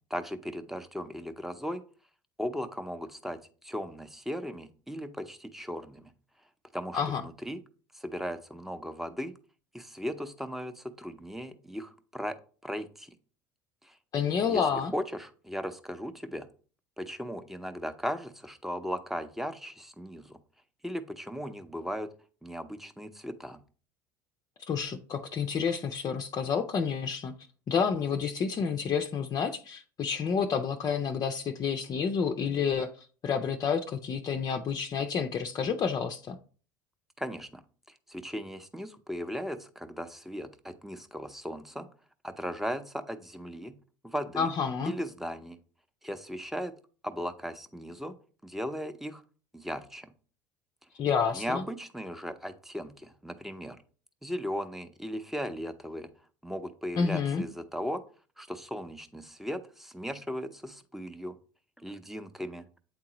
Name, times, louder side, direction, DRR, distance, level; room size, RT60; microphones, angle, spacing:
voice 1, 0.1-1.8 2.4-6.1 6.7-7.6 8.0-9.3 9.7-12.4 12.6-13.1 13.8-14.0 14.5-16.5 17.0-20.4 20.8-22.1 22.4-23.6 37.2-37.6 38.1-41.9 42.2-43.8 44.0-44.5 44.9-45.6 46.0-46.7 47.0-48.1 48.4-49.2 49.5-50.1 51.3-53.8 54.2-56.1 56.4-58.0 58.4-61.4 61.8-62.6, equal, 5° right, 8 dB, 0.7 m, -37 dB
voice 2, 14.1-14.9 24.7-27.3 27.7-36.4 44.4-44.9 51.0-51.6 57.0-57.4, left 6 dB, 40° left, 4 dB, 0.6 m, -29 dB
8.6 x 3.7 x 3.0 m, 0.39 s
hypercardioid pair, 80°, 10 cm